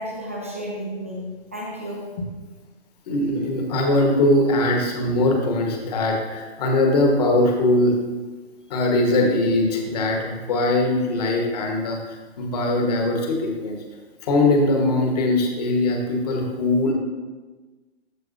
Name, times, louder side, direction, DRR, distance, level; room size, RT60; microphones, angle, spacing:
voice 1, 0.0-2.2, equal, 15° right, -3 dB, 0.4 m, -32 dB
voice 2, 3.1-8.0 8.7-13.8 14.2-16.9, left 2 dB, 35° left, 1 dB, 1.3 m, -21 dB
13.5 x 4.6 x 2.6 m, 1.3 s
hypercardioid pair, 155°, 33 cm